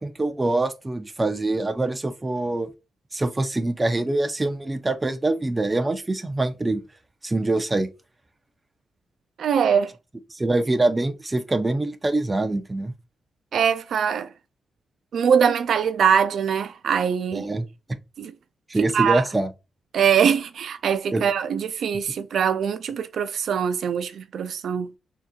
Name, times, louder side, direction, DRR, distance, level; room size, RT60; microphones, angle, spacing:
voice 1, 0.0-2.7 3.1-6.8 7.2-7.9 10.3-12.9 17.3-17.6 18.7-19.5 21.1-21.2, right 2 dB, 20° right, 0.6 m, -24 dB
voice 2, 9.4-9.9 13.5-14.3 15.1-17.5 18.2-18.3 18.9-19.2 19.9-24.9, right 7 dB, 70° right, 0.3 m, -22 dB
6.3 x 2.9 x 2.3 m
cardioid pair, 120°, 0 cm